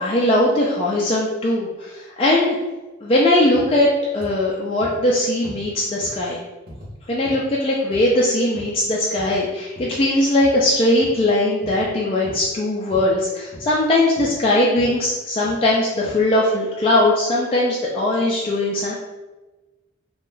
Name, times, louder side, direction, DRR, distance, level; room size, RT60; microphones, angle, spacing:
voice 1, 0.0-2.6 3.0-6.4 7.1-18.9, left 1 dB, 30° left, -5 dB, 0.3 m, -20 dB
sound 1, 3.5-3.8 4.2-4.4 4.8-5.0 5.4-5.7 6.0-6.2 6.7-6.9 7.3-7.5 7.9-8.1 8.5-8.8 9.2-9.4 9.8-10.0 10.4-10.6 11.0-11.3 11.6-11.9 12.2-12.5 12.9-13.1 13.5-13.7 14.2-14.4 14.8-15.0 15.4-15.7 16.0-16.1, equal, 45° right, 0.9 m, -39 dB
3.6 x 2.2 x 2.5 m, 1.1 s
head